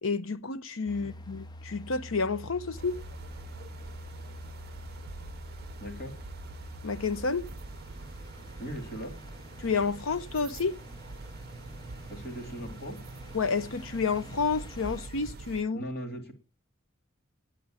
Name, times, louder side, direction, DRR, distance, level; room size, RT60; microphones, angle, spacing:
voice 1, 0.0-3.0 6.8-7.4 9.6-10.8 13.3-15.8, left 4 dB, 85° left, 0.8 m, -30 dB
sound 1, 0.9-15.1, left 1 dB, 20° left, 0.6 m, -47 dB
sound 2, 2.8-15.6, right 3 dB, 50° right, 0.6 m, -45 dB
voice 2, 5.8-6.2 8.6-9.2 12.1-13.0 15.7-16.3, equal, 55° left, 2.6 m, -39 dB
9.6 x 9.3 x 8.9 m
head